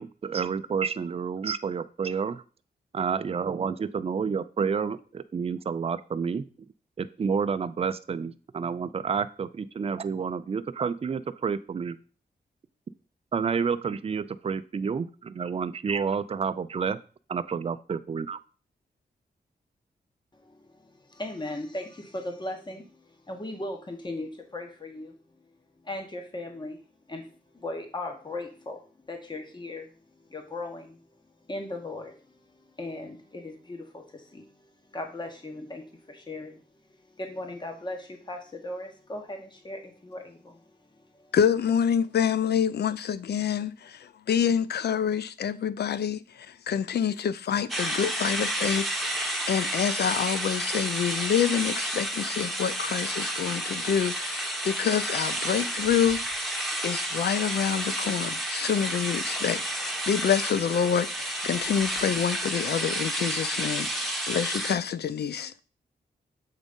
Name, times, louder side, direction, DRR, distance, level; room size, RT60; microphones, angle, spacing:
voice 1, 0.0-2.4 2.9-6.5 7.0-12.0 13.3-17.0 17.3-18.4, right 6 dB, 35° right, 0.4 m, -29 dB
voice 2, 20.3-25.1 25.8-26.8 27.1-29.9 30.3-31.0 31.5-41.4, left 2 dB, 25° left, 1.3 m, -38 dB
voice 3, 41.3-44.0 44.3-46.2 46.7-56.5 56.8-65.5, left 8 dB, 70° left, 0.5 m, -27 dB
sound 1, 47.7-64.7, right 1 dB, ahead, 1.2 m, -31 dB
7.3 x 3.9 x 5.3 m
wide cardioid pair, 100°, 17 cm